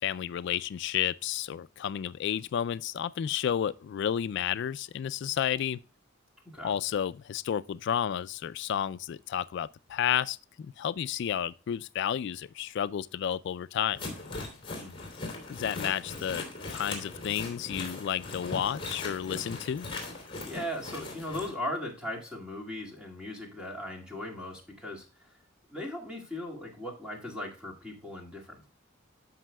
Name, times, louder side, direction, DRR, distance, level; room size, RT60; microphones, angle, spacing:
voice 1, 0.0-5.8 6.6-14.0 15.5-19.9, left 9 dB, 60° left, 0.3 m, -31 dB
voice 2, 6.4-6.7 14.7-15.0 20.4-25.3 25.7-28.7, left 1 dB, 5° right, 2.0 m, -38 dB
sound 1, 14.0-21.5, left 3 dB, 25° left, 2.8 m, -39 dB
13.5 x 5.4 x 2.2 m
head